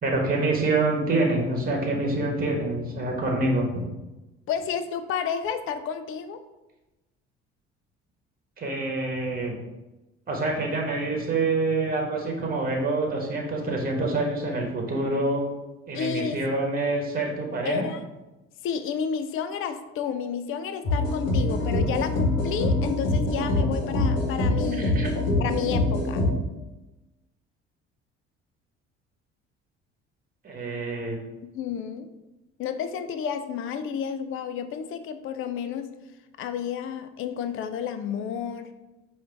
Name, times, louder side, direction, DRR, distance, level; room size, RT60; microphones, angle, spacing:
voice 1, 0.0-3.8 8.6-9.5 10.3-15.4 15.9-17.8 24.7-25.1 30.4-31.2, right 2 dB, 25° right, 1 dB, 1.2 m, -26 dB
voice 2, 4.5-6.4 15.9-16.4 17.6-18.0 18.6-25.1 25.4-26.2 31.4-32.1 32.6-35.9 36.4-38.7, left 7 dB, 40° left, 9 dB, 0.4 m, -31 dB
sound 1, 20.8-26.3, left 2 dB, 65° left, 1.3 m, -24 dB
4.9 x 2.6 x 3.4 m, 1.0 s
hypercardioid pair, 55°, 34 cm